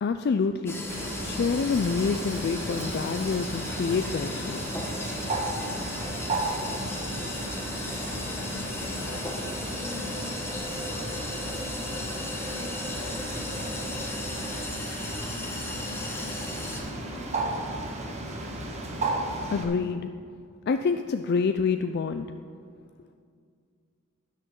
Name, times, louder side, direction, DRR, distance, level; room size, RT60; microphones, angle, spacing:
voice 1, 0.0-0.8 1.2-4.7 19.5-20.1 20.7-22.3, left 5 dB, 50° left, 8 dB, 0.4 m, -27 dB
sound 1, 0.7-16.8, left 2 dB, 10° left, 1.3 m, -36 dB
Bird, 0.9-19.6, right 2 dB, 30° right, 1.4 m, -34 dB
voice 2, 8.8-15.6 15.8-18.2 22.6-23.1, left 2 dB, 80° left, -1 dB, 2.2 m, -47 dB
12.5 x 11.0 x 3.8 m, 2.2 s
head